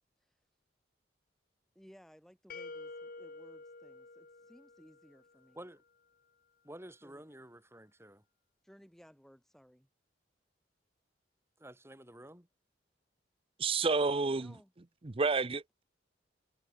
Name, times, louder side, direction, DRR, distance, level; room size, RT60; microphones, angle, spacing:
voice 1, 1.7-5.6 7.0-7.4 8.6-9.9 14.0-14.7, equal, ahead, 4.2 m, -59 dB
sound 1, 2.5-5.4, left 3 dB, 55° left, 1.5 m, -49 dB
voice 2, 6.6-8.2 11.6-12.5, right 1 dB, 15° right, 5.2 m, -51 dB
voice 3, 13.6-14.5 15.0-15.8, right 4 dB, 30° right, 0.7 m, -30 dB
head